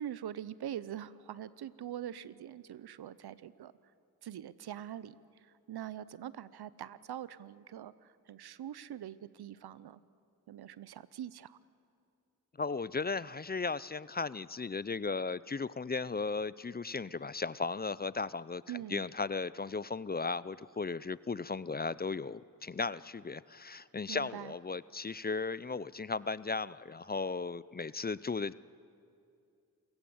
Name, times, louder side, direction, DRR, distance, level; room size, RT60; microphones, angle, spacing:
voice 1, 0.0-3.7 4.2-5.2 5.4-10.0 10.5-11.6 18.7-19.0 24.1-24.5, right 11 dB, 80° right, 18 dB, 0.7 m, -43 dB
voice 2, 12.6-28.5, left 4 dB, 25° left, 19 dB, 0.5 m, -36 dB
28.5 x 16.0 x 7.1 m, 2.6 s
cardioid pair, 45°, 38 cm